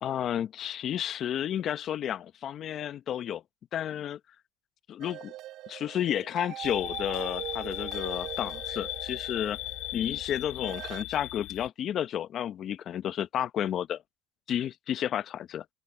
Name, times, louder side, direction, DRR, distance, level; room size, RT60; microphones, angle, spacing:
voice 1, 0.0-3.4 3.7-4.2 4.9-5.3 5.7-9.6 9.9-14.0 14.5-15.6, left 10 dB, 40° left, 0.9 m, -32 dB
sound 1, 5.0-11.0, right 14 dB, 55° right, 4.1 m, -42 dB
sound 2, 6.6-11.7, left 18 dB, 65° left, 1.8 m, -37 dB
open air
supercardioid pair, 115°, 0 cm